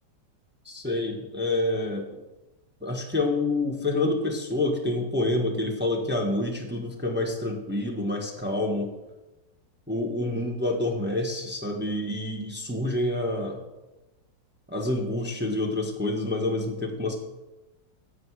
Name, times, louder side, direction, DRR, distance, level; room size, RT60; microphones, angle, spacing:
voice 1, 0.6-2.1 2.8-8.9 9.9-13.6 14.7-17.1, left 2 dB, 5° right, 0 dB, 1.2 m, -27 dB
15.5 x 6.2 x 4.8 m, 1.0 s
omnidirectional pair, 2.0 m